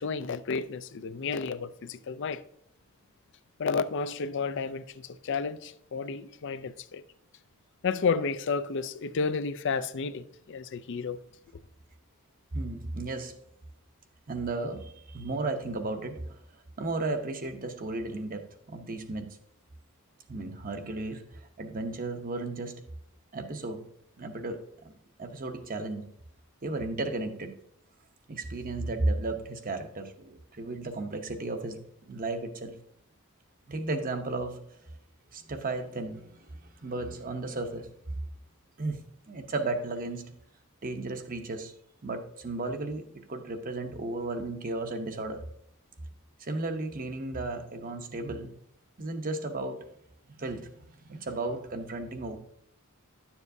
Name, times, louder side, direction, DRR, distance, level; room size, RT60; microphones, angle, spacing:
voice 1, 0.0-2.4 3.6-7.0 7.8-11.2, left 5 dB, 55° left, 0.4 m, -31 dB
voice 2, 12.5-13.3 14.3-16.4 16.8-19.4 20.3-22.8 23.3-23.9 24.2-24.9 25.2-26.1 26.6-27.6 28.3-31.8 32.1-32.8 33.7-34.6 35.3-38.2 38.8-40.3 40.8-41.7 42.0-45.4 46.4-48.5 49.0-49.9 50.4-52.4, right 2 dB, 40° right, 0.8 m, -34 dB
11.0 x 7.1 x 2.7 m
head